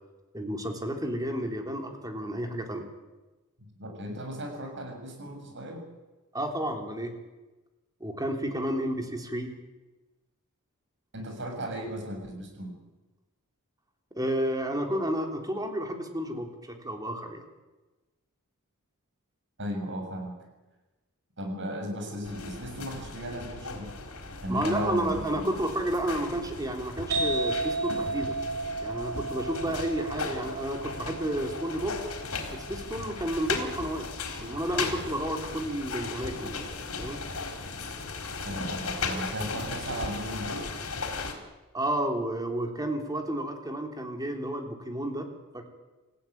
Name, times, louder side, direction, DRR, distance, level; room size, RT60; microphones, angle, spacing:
voice 1, 0.3-2.9 6.3-7.2 8.0-9.5 14.2-17.4 24.5-28.4 28.8-32.0 32.5-34.1 34.4-36.6 37.0-37.2 41.7-45.3 45.5-45.7, right 1 dB, 15° right, 4 dB, 3.5 m, -31 dB
voice 2, 3.8-5.8 11.1-12.8 19.6-20.4 21.4-23.9 24.4-25.5 38.4-40.7, equal, 55° right, 4 dB, 7.2 m, -36 dB
sound 1, 22.2-41.3, left 4 dB, 75° left, 4.1 m, -37 dB
sound 2, 27.1-34.5, right 3 dB, 85° right, 7.1 m, -34 dB
27.5 x 16.0 x 9.4 m, 1.2 s
head